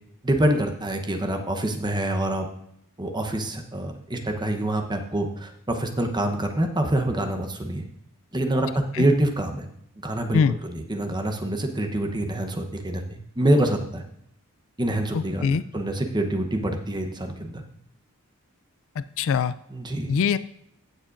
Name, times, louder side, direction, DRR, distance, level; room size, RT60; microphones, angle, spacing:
voice 1, 0.2-2.5 3.0-7.8 8.3-9.6 10.0-14.0 14.8-17.6 19.7-20.1, right 1 dB, 20° right, 4 dB, 0.9 m, -26 dB
voice 2, 15.1-15.6 19.2-19.5 20.1-20.4, left 6 dB, 60° left, 15 dB, 0.3 m, -22 dB
15.5 x 7.2 x 2.6 m, 0.73 s
head